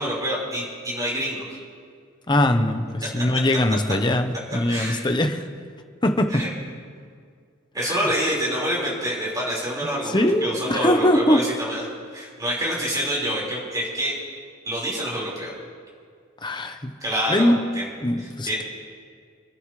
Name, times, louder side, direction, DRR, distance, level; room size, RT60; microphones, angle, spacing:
voice 1, 0.0-1.5 3.1-3.3 4.7-5.1 6.3-6.5 7.7-11.9 12.1-14.1 14.6-15.5 17.0-17.9 18.2-18.6, equal, 20° right, -5 dB, 4.9 m, -27 dB
voice 2, 2.3-5.4 6.0-6.5 7.8-8.1 10.1-11.5 16.4-17.0 17.3-17.6 18.0-18.6, left 1 dB, 20° left, 6 dB, 1.0 m, -21 dB
29.5 x 11.0 x 3.3 m, 2.1 s
head